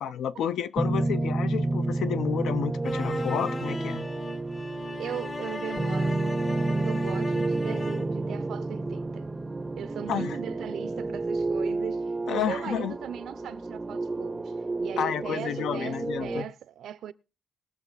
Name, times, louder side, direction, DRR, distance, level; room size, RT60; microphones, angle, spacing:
voice 1, 0.0-4.1 10.1-10.4 12.3-13.0 15.0-16.5, left 9 dB, 90° left, 0.6 m, -30 dB
sound 1, 0.8-16.4, right 2 dB, 15° right, 0.5 m, -30 dB
sound 2, 2.8-8.2, left 4 dB, 25° left, 0.6 m, -38 dB
voice 2, 5.0-9.2 9.8-14.5 14.8-17.1, right 10 dB, 80° right, 0.6 m, -38 dB
20.5 x 6.8 x 4.0 m
cardioid pair, 140°, 0 cm